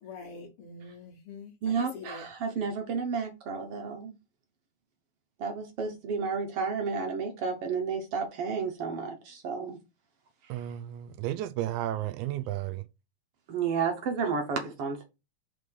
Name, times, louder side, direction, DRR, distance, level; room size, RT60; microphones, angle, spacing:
voice 1, 0.0-2.3, left 4 dB, 60° left, 1.7 m, -45 dB
voice 2, 1.6-4.2 5.4-9.8 10.4-10.7 13.5-15.0, right 5 dB, 65° right, 1.7 m, -32 dB
voice 3, 10.5-12.8, right 13 dB, 85° right, 2.0 m, -33 dB
5.2 x 3.7 x 5.4 m
omnidirectional pair, 3.4 m